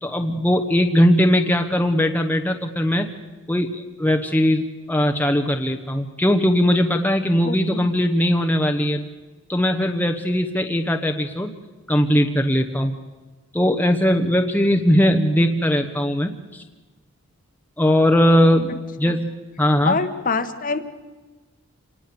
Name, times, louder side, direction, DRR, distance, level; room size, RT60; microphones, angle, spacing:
voice 1, 0.0-3.1 3.5-9.0 9.5-11.5 11.9-12.9 13.5-16.6 17.8-19.3 19.6-20.0, equal, 10° left, 4 dB, 0.9 m, -19 dB
voice 2, 7.4-7.9 19.0-19.1 19.8-20.8, left 4 dB, 35° left, 10 dB, 1.2 m, -25 dB
26.5 x 19.0 x 7.0 m, 1.2 s
head